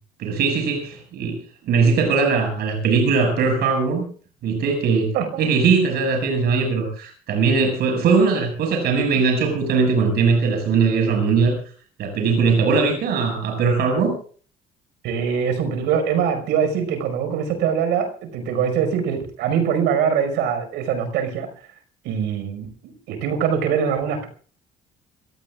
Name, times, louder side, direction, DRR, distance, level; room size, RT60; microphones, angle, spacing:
voice 1, 0.2-1.4 1.6-4.0 4.4-5.1 5.4-11.6 12.0-14.1, right 5 dB, 70° right, 2 dB, 6.4 m, -20 dB
voice 2, 5.1-5.5 15.0-21.5 22.0-24.3, right 7 dB, 90° right, 8 dB, 5.5 m, -23 dB
26.5 x 18.5 x 2.5 m, 0.43 s
cardioid pair, 110°, 17 cm